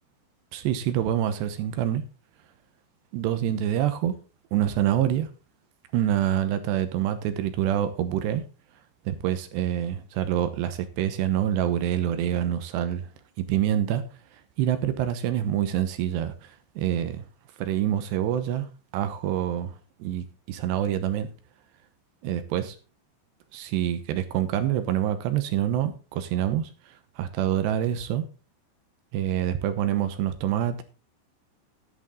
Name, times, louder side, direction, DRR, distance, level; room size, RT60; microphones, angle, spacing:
voice 1, 0.5-2.0 3.1-4.1 4.5-5.3 5.9-8.4 9.1-13.1 13.4-14.0 14.6-17.2 17.6-18.7 18.9-19.7 20.0-21.3 22.2-22.8 23.5-26.7 27.2-28.2 29.1-30.8, right 11 dB, 75° right, 3.0 m, -26 dB
11.0 x 10.5 x 3.8 m
omnidirectional pair, 5.1 m